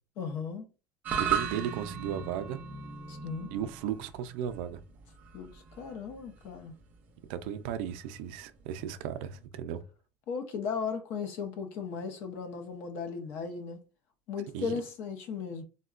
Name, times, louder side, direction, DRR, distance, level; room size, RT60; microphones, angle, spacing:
voice 1, 0.2-0.7 3.1-3.5 5.3-6.7 10.3-13.8 14.3-15.6, left 6 dB, 50° left, 0.5 m, -36 dB
sound 1, 1.0-9.5, right 7 dB, 30° right, 0.5 m, -38 dB
voice 2, 1.2-2.6 3.5-4.8 7.3-9.8 14.5-14.7, right 9 dB, 90° right, 0.3 m, -35 dB
3.6 x 2.1 x 2.4 m
cardioid pair, 180°, 5 cm